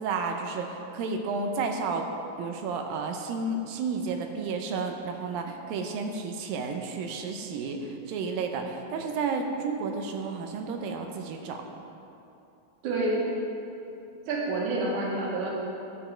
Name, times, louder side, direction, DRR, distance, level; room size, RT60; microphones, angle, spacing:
voice 1, 0.0-2.1 2.4-11.6, right 4 dB, 80° right, 4 dB, 2.6 m, -32 dB
voice 2, 12.8-13.2 14.3-15.5, right 2 dB, 60° right, -4 dB, 3.0 m, -28 dB
12.0 x 8.2 x 4.4 m, 2.8 s
omnidirectional pair, 4.1 m